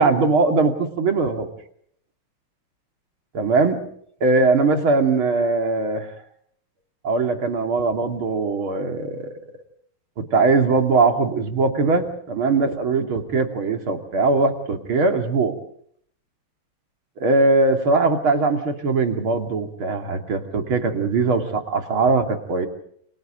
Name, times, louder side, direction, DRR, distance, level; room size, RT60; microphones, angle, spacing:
voice 1, 0.0-1.5 3.3-3.8 4.2-6.1 7.0-9.4 10.2-15.6 17.2-22.7, right 3 dB, 75° right, 5 dB, 3.5 m, -20 dB
29.5 x 27.0 x 3.9 m, 0.65 s
omnidirectional pair, 2.3 m